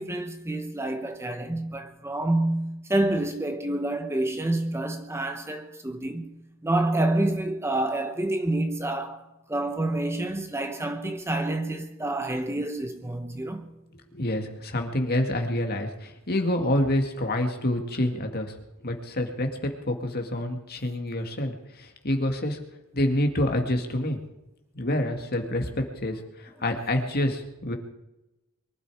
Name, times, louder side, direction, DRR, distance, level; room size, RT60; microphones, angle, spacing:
voice 1, 0.0-13.7, right 1 dB, 10° right, 0.9 m, -28 dB
voice 2, 14.1-18.5 18.8-22.6 22.9-24.2 24.7-27.7, left 1 dB, 45° left, 2.1 m, -27 dB
23.5 x 12.0 x 4.9 m
head